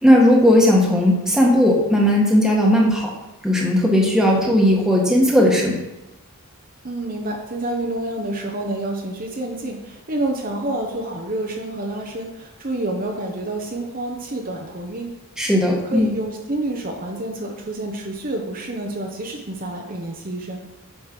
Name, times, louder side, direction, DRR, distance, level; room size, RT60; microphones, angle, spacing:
voice 1, 0.0-3.1 3.4-5.8 15.4-16.1, equal, ahead, -2 dB, 1.5 m, -16 dB
voice 2, 6.8-15.2 15.8-20.6, right 1 dB, 40° right, 1 dB, 1.0 m, -28 dB
8.8 x 5.3 x 6.0 m, 0.98 s
head